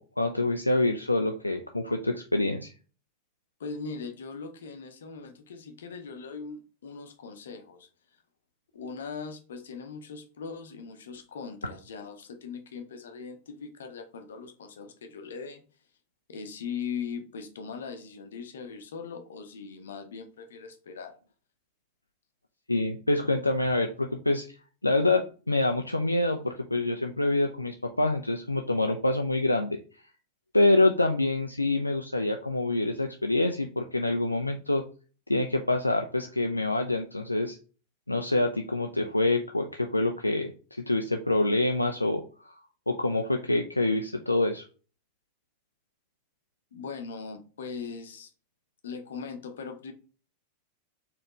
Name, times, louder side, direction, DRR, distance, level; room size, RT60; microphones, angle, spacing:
voice 1, 0.0-2.7 22.7-24.5 24.8-29.8 30.5-34.8 35.3-37.6 38.1-42.5 42.9-44.6, left 2 dB, 85° left, 4 dB, 0.4 m, -26 dB
voice 2, 3.6-7.9 8.7-15.6 16.3-21.1 46.7-48.3 48.8-49.9, left 5 dB, 65° left, 7 dB, 0.7 m, -40 dB
4.2 x 3.2 x 3.0 m, 0.36 s
figure-of-eight pair, 90°, 0 cm